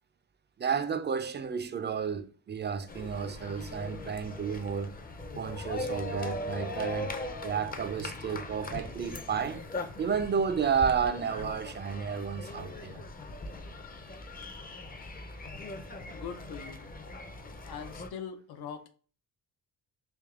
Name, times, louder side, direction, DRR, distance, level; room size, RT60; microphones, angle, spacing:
voice 1, 0.6-5.0 5.4-7.1 7.4-9.6 10.0-13.0, right 6 dB, 30° right, 0.4 m, -32 dB
sound 1, 2.9-18.1, left 2 dB, 25° left, 0.5 m, -40 dB
voice 2, 16.1-16.9 17.7-18.9, left 7 dB, 80° left, 0.6 m, -41 dB
3.5 x 2.8 x 3.5 m
cardioid pair, 110°, 37 cm